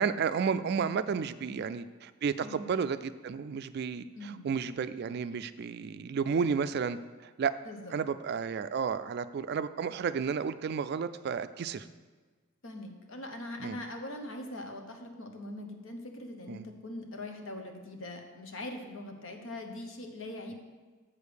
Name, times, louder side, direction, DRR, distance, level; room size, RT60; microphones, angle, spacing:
voice 1, 0.0-7.0 7.4-7.5 7.9-11.9 13.6-13.8 16.5-16.6, right 6 dB, 50° right, 13 dB, 0.3 m, -32 dB
voice 2, 1.2-1.7 2.4-2.8 4.1-4.5 7.6-8.0 12.6-20.6, left 1 dB, 70° left, 4 dB, 1.0 m, -42 dB
7.3 x 5.2 x 6.4 m, 1.4 s
head